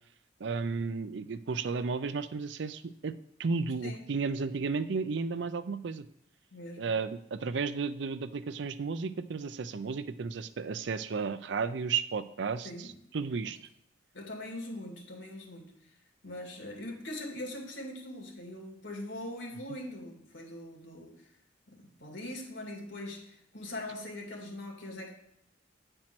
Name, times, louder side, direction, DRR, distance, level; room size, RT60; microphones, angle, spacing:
voice 1, 0.4-3.1 3.4-6.1 6.8-13.6, right 5 dB, 65° right, 13 dB, 0.5 m, -33 dB
voice 2, 6.5-6.9 12.6-12.9 14.1-15.7 16.2-21.3 21.7-25.1, left 1 dB, 80° left, 1 dB, 2.2 m, -42 dB
8.9 x 4.4 x 5.9 m, 0.77 s
head